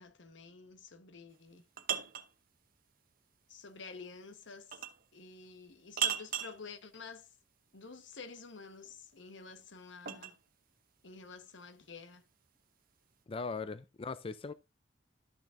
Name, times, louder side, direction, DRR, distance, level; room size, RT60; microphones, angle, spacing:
voice 1, 0.0-1.6 3.5-4.8 5.1-7.3 7.7-10.4 11.0-12.2, left 4 dB, 85° left, 1.2 m, -50 dB
sound 1, 1.3-2.3 4.7-5.1 6.0-6.6 8.9-10.4, right 8 dB, 50° right, 0.9 m, -36 dB
voice 2, 13.3-14.5, left 4 dB, 30° left, 0.4 m, -39 dB
12.0 x 6.1 x 2.5 m
head